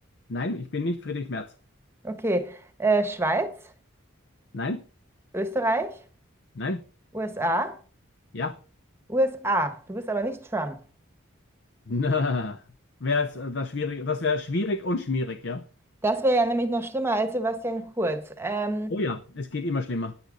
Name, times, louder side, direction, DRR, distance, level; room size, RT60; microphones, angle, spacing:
voice 1, 0.3-1.5 4.5-4.8 6.6-6.8 8.3-8.6 11.9-12.6 13.0-15.6 18.9-20.1, left 3 dB, 55° left, 0.6 m, -28 dB
voice 2, 2.0-3.6 5.3-6.0 7.1-7.8 9.1-10.8 16.0-19.0, right 2 dB, 10° right, 1.2 m, -26 dB
14.5 x 10.5 x 3.9 m
head